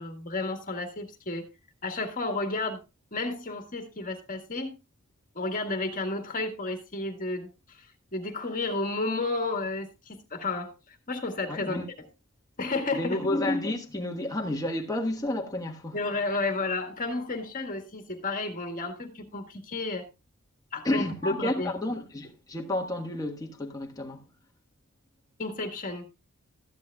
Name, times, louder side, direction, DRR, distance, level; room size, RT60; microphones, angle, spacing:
voice 1, 0.0-1.5 1.8-2.8 3.1-4.7 5.4-11.8 12.6-13.2 15.9-20.0 20.7-21.7 25.4-26.1, left 3 dB, 35° left, 1.8 m, -32 dB
voice 2, 11.5-11.9 12.9-16.0 20.8-24.2, left 1 dB, 15° left, 1.4 m, -30 dB
14.0 x 10.5 x 2.3 m
head